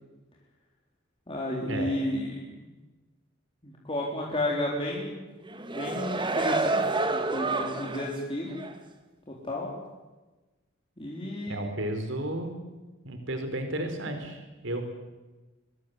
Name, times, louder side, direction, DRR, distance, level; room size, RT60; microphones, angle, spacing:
voice 1, 1.3-2.4 3.6-5.2 5.7-8.6 9.3-9.7 11.0-11.6, left 1 dB, 25° left, -3 dB, 4.2 m, -32 dB
sound 1, 5.4-8.2 8.6-8.7, right 3 dB, 25° right, 2.0 m, -28 dB
voice 2, 11.5-12.5 13.0-14.8, right 1 dB, 65° right, 6 dB, 4.2 m, -33 dB
25.0 x 22.0 x 8.3 m, 1.2 s
head